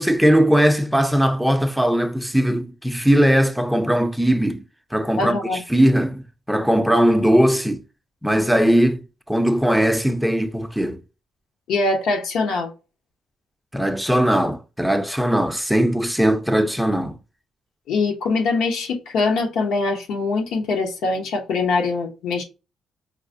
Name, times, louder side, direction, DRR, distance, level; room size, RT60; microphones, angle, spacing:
voice 1, 0.0-4.6 4.9-7.8 8.2-11.0 13.7-17.2, equal, ahead, 0.5 m, -19 dB
voice 2, 5.2-5.6 11.7-12.7 17.9-22.4, left 3 dB, 85° left, 0.9 m, -23 dB
4.6 x 2.1 x 2.6 m
cardioid pair, 90°, 0 cm